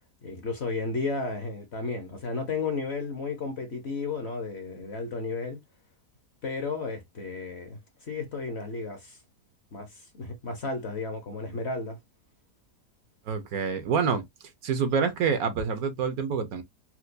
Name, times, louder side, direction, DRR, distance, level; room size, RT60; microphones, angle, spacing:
voice 1, 0.0-5.6 6.4-9.2 9.7-12.0, left 3 dB, 50° left, 0.9 m, -33 dB
voice 2, 13.3-14.2 14.6-16.6, right 6 dB, 65° right, 1.1 m, -27 dB
4.4 x 2.2 x 2.5 m
omnidirectional pair, 1.8 m